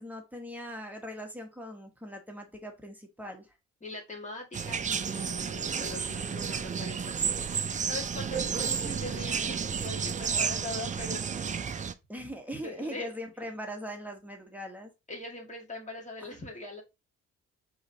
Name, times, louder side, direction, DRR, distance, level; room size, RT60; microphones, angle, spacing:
voice 1, 0.0-3.5 12.1-14.9 16.2-16.4, equal, 5° right, 2 dB, 1.1 m, -40 dB
voice 2, 3.8-11.3 12.6-13.1 15.1-16.8, left 2 dB, 25° left, 0 dB, 1.7 m, -42 dB
sound 1, 4.5-11.9, right 6 dB, 25° right, 0.4 m, -32 dB
4.8 x 3.2 x 2.7 m, 0.24 s
cardioid pair, 90°, 30 cm